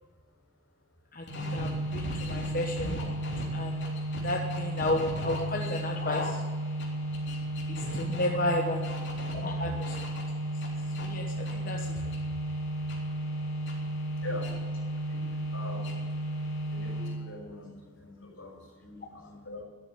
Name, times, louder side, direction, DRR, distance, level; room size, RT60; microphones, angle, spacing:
voice 1, 1.1-3.1 3.5-3.9 4.2-6.4 7.7-9.9 11.0-11.9, left 1 dB, 45° left, 1 dB, 1.1 m, -32 dB
sound 1, 1.3-17.4, right 1 dB, 60° left, 3.6 m, -33 dB
voice 2, 15.1-15.8 16.7-19.6, left 2 dB, 80° left, 1 dB, 6.3 m, -42 dB
13.5 x 8.6 x 10.0 m, 1.4 s
head